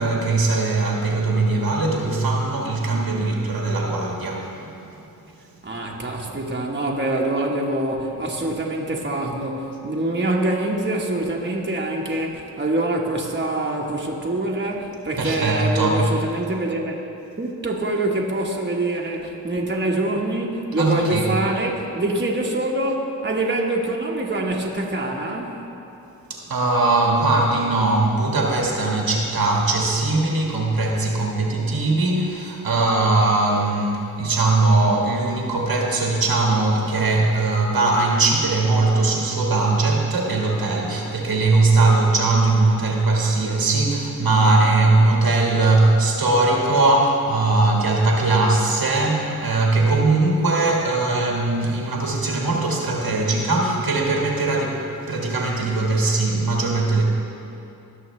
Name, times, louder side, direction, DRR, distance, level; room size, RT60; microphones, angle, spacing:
voice 1, 0.0-5.0 5.9-6.0 15.2-16.0 20.8-21.3 26.3-57.0, right 2 dB, 70° right, -1 dB, 1.6 m, -20 dB
voice 2, 5.6-17.0 17.4-25.6, right 2 dB, 30° right, -1 dB, 1.3 m, -25 dB
17.5 x 6.2 x 3.2 m, 2.8 s
cardioid pair, 45°, 38 cm